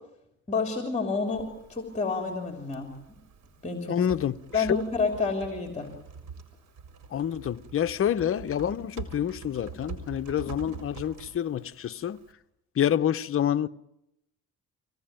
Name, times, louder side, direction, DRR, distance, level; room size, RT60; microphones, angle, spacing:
voice 1, 0.5-2.9 3.6-4.0 4.5-5.9, left 4 dB, 20° left, 3.2 m, -29 dB
Typing, 1.3-12.3, right 5 dB, 70° right, 4.4 m, -45 dB
voice 2, 3.9-4.8 7.1-12.2 12.8-13.7, left 10 dB, 45° left, 0.8 m, -28 dB
24.0 x 17.5 x 9.0 m
cardioid pair, 90°, 30 cm